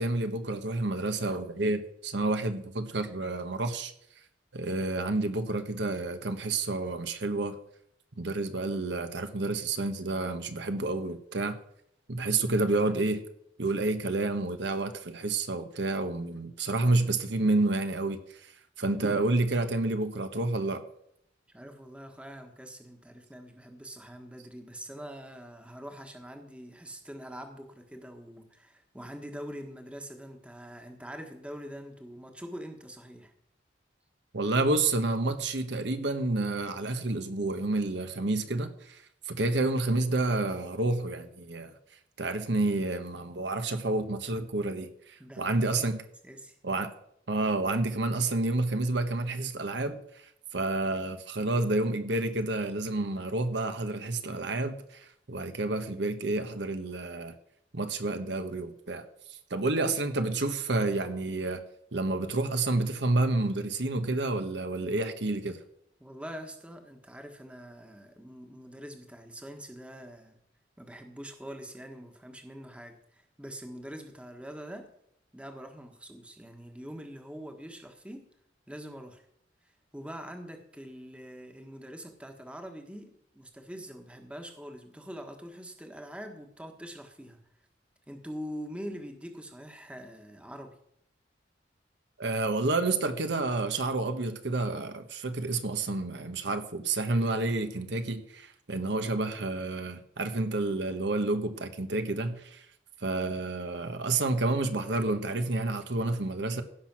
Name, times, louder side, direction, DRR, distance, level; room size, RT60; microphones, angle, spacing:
voice 1, 0.0-3.9 4.5-7.6 8.2-11.5 12.1-13.2 13.6-18.5 18.8-20.8 34.3-41.7 42.2-46.0 46.6-46.9 47.3-57.3 57.7-61.6 61.9-65.6 92.2-102.6 103.0-106.6, right 2 dB, 70° right, 1.1 m, -29 dB
voice 2, 21.5-33.3 45.2-45.9 46.2-46.6 66.0-70.4 70.8-74.9 75.3-78.3 78.7-79.2 79.9-87.4 88.1-90.8, equal, 5° right, 1.4 m, -44 dB
16.0 x 6.2 x 6.1 m
head